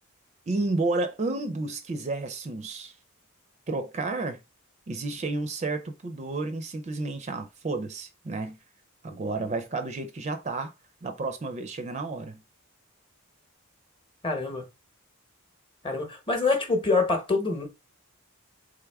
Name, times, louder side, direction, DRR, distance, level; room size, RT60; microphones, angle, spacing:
voice 1, 0.5-2.9 3.7-4.4 4.9-8.6 9.0-10.7 11.0-12.4, right 3 dB, 30° right, 0.4 m, -31 dB
voice 2, 14.2-14.6 15.8-17.7, left 3 dB, 25° left, 0.9 m, -25 dB
3.6 x 3.5 x 3.4 m
head